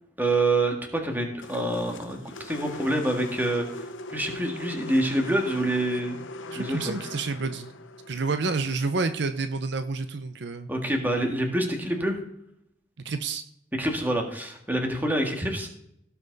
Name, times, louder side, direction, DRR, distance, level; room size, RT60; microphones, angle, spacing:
voice 1, 0.2-6.2 6.5-7.0 10.7-12.2 13.8-15.7, right 1 dB, 10° right, 2 dB, 1.8 m, -27 dB
sound 1, 1.4-9.7, left 2 dB, 80° left, 0.9 m, -40 dB
voice 2, 6.5-7.7 8.1-10.7 13.0-13.4, right 4 dB, 60° right, 9 dB, 0.6 m, -29 dB
17.5 x 5.9 x 4.0 m, 0.74 s
head